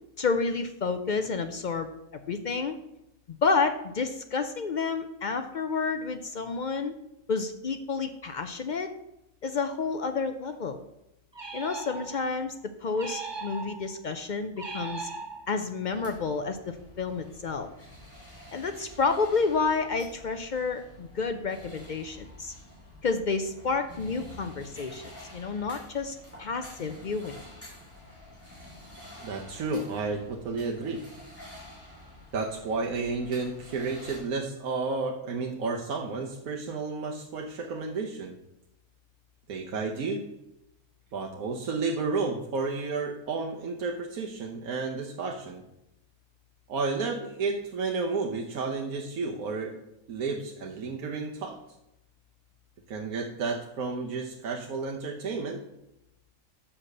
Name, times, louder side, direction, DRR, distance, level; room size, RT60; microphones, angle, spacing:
voice 1, 0.2-1.9 2.3-2.8 3.4-6.9 7.3-8.9 9.4-10.8 11.5-15.1 15.5-16.6 17.0-17.7 18.5-22.5 23.0-27.4, left 4 dB, 65° left, 8 dB, 0.4 m, -30 dB
sound 1, 11.3-12.4 12.9-14.0 14.6-15.8, right 4 dB, 20° right, 0.8 m, -39 dB
sound 2, 15.9-34.2, left 1 dB, 10° left, 3.5 m, -49 dB
voice 2, 29.2-31.1 32.3-38.3 39.5-40.3 41.1-45.6 46.7-49.8 50.1-51.6 52.9-55.6, right 4 dB, 75° right, 1 dB, 1.3 m, -32 dB
6.8 x 5.8 x 6.6 m, 0.87 s
omnidirectional pair, 1.5 m